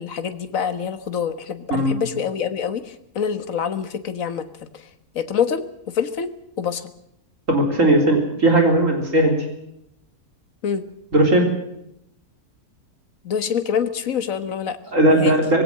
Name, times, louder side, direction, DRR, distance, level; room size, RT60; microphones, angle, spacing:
voice 1, 0.0-4.9 5.2-6.9 10.6-10.9 13.2-14.8 15.1-15.3, left 7 dB, 60° left, 11 dB, 1.8 m, -26 dB
voice 2, 7.5-9.4 11.1-11.5 14.9-15.6, right 1 dB, 55° right, 3 dB, 4.0 m, -17 dB
20.5 x 17.0 x 7.5 m, 0.78 s
omnidirectional pair, 1.6 m